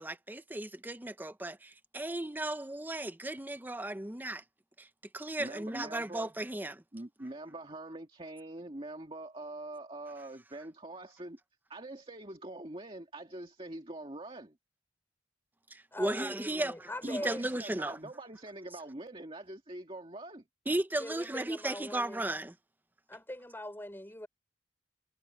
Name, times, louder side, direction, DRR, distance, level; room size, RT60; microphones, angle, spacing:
voice 1, 0.0-4.4 4.8-4.9 5.1-6.8 15.7-18.0 20.7-22.5, right 1 dB, 10° right, 0.7 m, -35 dB
voice 2, 5.4-6.3 6.9-11.4 11.7-14.6 17.0-20.4, right 2 dB, 30° right, 2.1 m, -44 dB
voice 3, 15.9-17.4 21.0-22.3 23.1-24.3, left 1 dB, 10° left, 4.5 m, -42 dB
head